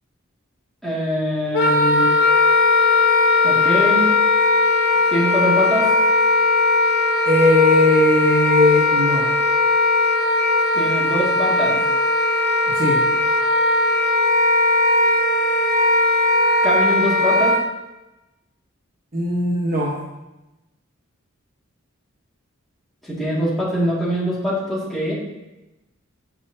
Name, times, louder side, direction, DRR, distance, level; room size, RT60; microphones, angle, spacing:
voice 1, 0.8-2.1 3.4-4.1 5.1-5.9 10.7-11.8 16.6-17.6 23.0-25.1, equal, ahead, -8 dB, 2.1 m, -23 dB
Wind instrument woodwind instrument, 1.5-17.6, left 2 dB, 50° left, 1.0 m, -18 dB
voice 2, 7.3-9.3 12.7-13.0 19.1-20.0, left 2 dB, 40° right, -4 dB, 1.0 m, -18 dB
7.6 x 6.0 x 2.7 m, 1.0 s
head